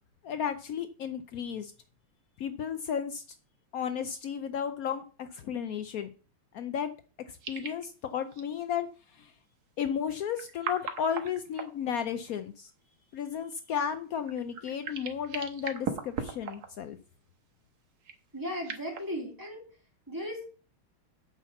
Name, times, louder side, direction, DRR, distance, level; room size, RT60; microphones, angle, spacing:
voice 1, 0.2-1.7 2.4-3.2 3.7-6.1 6.5-6.9 7.3-9.3 9.8-12.7 13.1-17.0, left 8 dB, 80° left, 9 dB, 0.7 m, -34 dB
sound 1, 7.4-7.9 8.3-8.4 10.2-12.3 14.2-16.9 18.0-19.0, right 6 dB, 50° right, 1.6 m, -38 dB
voice 2, 18.3-19.6 20.1-20.6, equal, 10° right, -2 dB, 3.6 m, -36 dB
8.5 x 5.7 x 7.0 m, 0.37 s
omnidirectional pair, 2.3 m